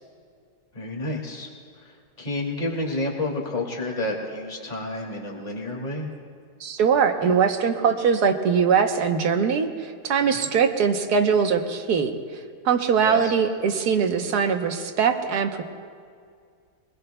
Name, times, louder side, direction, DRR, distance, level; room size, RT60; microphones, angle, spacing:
voice 1, 0.7-1.5 1.8-6.1 10.2-10.5 13.0-13.3, left 2 dB, 25° left, -1 dB, 2.2 m, -30 dB
voice 2, 6.6-12.1 12.6-15.6, right 6 dB, 75° right, 5 dB, 1.5 m, -22 dB
24.5 x 20.0 x 2.2 m, 2.2 s
omnidirectional pair, 1.7 m